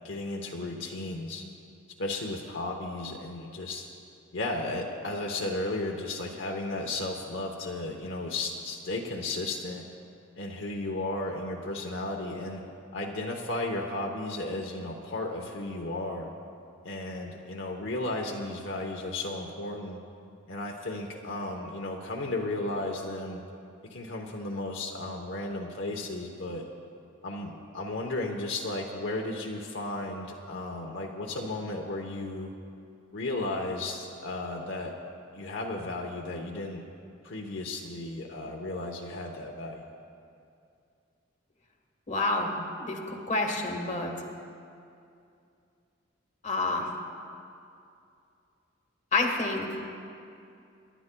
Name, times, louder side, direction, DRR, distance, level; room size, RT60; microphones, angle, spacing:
voice 1, 0.0-1.4 2.0-3.9 4.3-9.9 10.4-12.6 12.9-16.3 16.8-20.0 20.5-23.4 23.9-26.7 27.2-32.5 33.1-35.0 35.3-36.8 37.2-39.8, left 2 dB, 65° left, 0 dB, 0.9 m, -34 dB
voice 2, 42.1-44.1 46.4-46.9 49.1-49.7, left 2 dB, 35° left, 2 dB, 1.3 m, -28 dB
28.0 x 11.0 x 2.3 m, 2.5 s
head